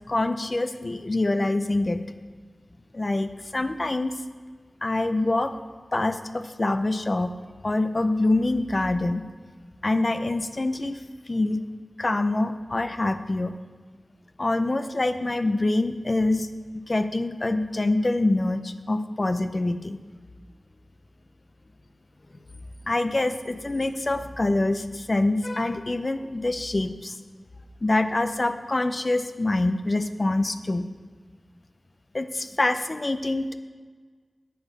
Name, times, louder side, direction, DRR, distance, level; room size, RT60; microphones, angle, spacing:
voice 1, 0.1-2.0 2.9-4.1 4.8-5.5 5.9-7.3 7.6-9.2 9.8-11.0 11.3-11.6 12.0-13.5 14.4-16.5 16.7-20.0 22.9-27.2 27.8-30.8 32.1-33.5, left 2 dB, 45° left, 9 dB, 0.6 m, -25 dB
9.5 x 7.1 x 5.3 m, 1.5 s
wide cardioid pair, 50°, 0 cm